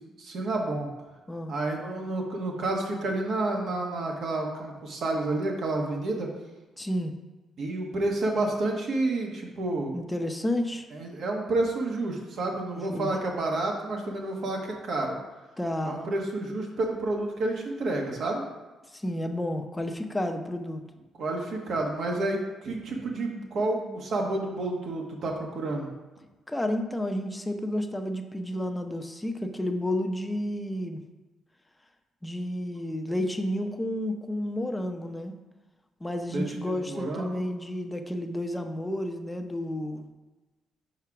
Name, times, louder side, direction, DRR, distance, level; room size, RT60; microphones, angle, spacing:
voice 1, 0.2-0.9 1.5-6.3 7.6-9.9 10.9-15.2 15.8-18.4 21.2-25.9 36.3-37.5, right 2 dB, 60° right, 0 dB, 1.3 m, -30 dB
voice 2, 6.8-7.1 9.9-10.8 12.9-13.1 15.6-16.1 18.9-20.8 26.5-31.0 32.2-35.3 36.0-40.1, left 1 dB, 10° left, 5 dB, 0.7 m, -31 dB
4.8 x 4.6 x 5.8 m, 1.2 s
cardioid pair, 90°, 0 cm